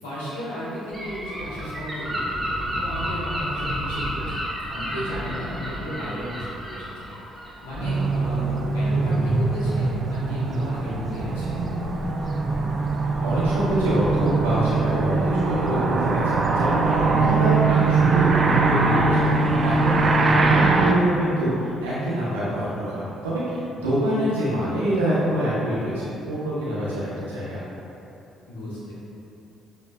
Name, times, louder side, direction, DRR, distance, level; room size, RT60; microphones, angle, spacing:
voice 1, 0.0-4.2 4.7-7.1 7.6-11.7 17.0-17.3 28.5-29.0, equal, 80° left, -9 dB, 1.2 m, -33 dB
Gull seagull / Wind, 0.9-8.2, equal, 10° right, 1.4 m, -31 dB
sound 1, 7.8-20.9, right 3 dB, 40° right, 0.4 m, -22 dB
voice 2, 13.2-27.6, right 1 dB, 85° right, -10 dB, 1.2 m, -25 dB
6.7 x 3.1 x 2.4 m, 2.9 s
hypercardioid pair, 45°, 0 cm